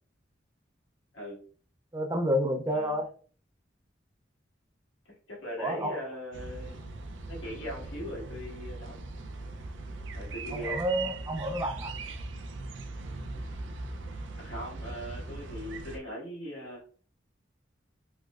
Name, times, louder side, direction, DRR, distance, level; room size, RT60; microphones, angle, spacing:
voice 1, 1.9-3.1 5.6-6.0 10.5-11.9, equal, 20° right, 0.5 m, -29 dB
voice 2, 2.7-3.0 5.3-6.8 7.3-9.0 10.1-10.8 14.3-16.8, left 1 dB, 85° left, 1.6 m, -40 dB
sound 1, 6.3-16.0, right 3 dB, 80° right, 0.5 m, -40 dB
3.2 x 3.1 x 2.4 m
head